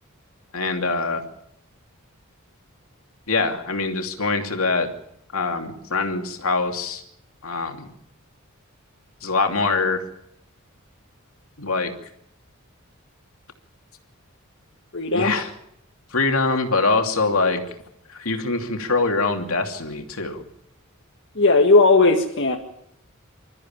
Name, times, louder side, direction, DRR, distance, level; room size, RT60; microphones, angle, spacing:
voice 1, 0.5-1.2 3.3-4.9 5.3-7.0 7.4-7.9 9.2-10.0 11.6-11.9 15.1-15.5 16.1-17.6 18.1-20.4, left 3 dB, 75° left, 4 dB, 2.8 m, -23 dB
voice 2, 14.9-15.3 21.4-22.6, left 3 dB, 60° left, 1 dB, 1.9 m, -16 dB
27.5 x 14.0 x 8.9 m, 0.77 s
head